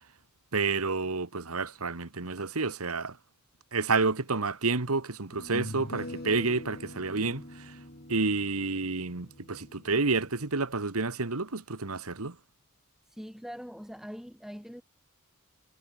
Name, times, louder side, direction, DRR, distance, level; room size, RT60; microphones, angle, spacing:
voice 1, 0.5-3.2 3.7-7.7 8.1-12.3, right 3 dB, 85° right, 1.7 m, -29 dB
sound 1, 4.2-4.3 5.3-10.6, left 1 dB, 45° left, 5.0 m, -44 dB
voice 2, 13.1-14.8, equal, ahead, 7.8 m, -42 dB
head